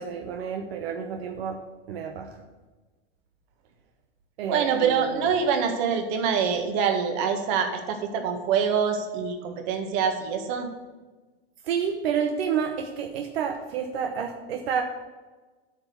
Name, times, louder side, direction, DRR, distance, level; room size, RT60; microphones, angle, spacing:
voice 1, 0.0-1.6 1.9-2.3 4.4-5.3 11.6-14.8, right 7 dB, 85° right, 4 dB, 1.0 m, -29 dB
voice 2, 4.5-10.7, right 6 dB, 55° right, 5 dB, 1.8 m, -25 dB
8.6 x 6.1 x 7.0 m, 1.3 s
supercardioid pair, 120°, 30 cm